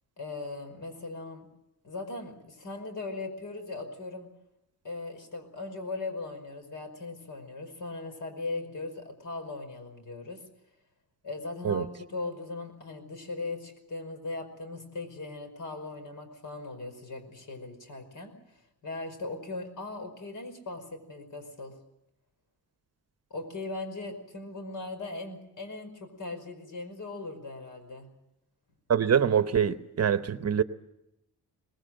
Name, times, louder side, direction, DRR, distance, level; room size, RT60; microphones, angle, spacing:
voice 1, 0.2-1.5 1.8-4.3 4.8-10.4 11.2-21.8 23.3-28.1, left 3 dB, 55° left, 5.3 m, -39 dB
voice 2, 28.9-30.6, right 8 dB, 45° right, 0.9 m, -24 dB
23.5 x 20.0 x 7.7 m
wide cardioid pair, 140°, 37 cm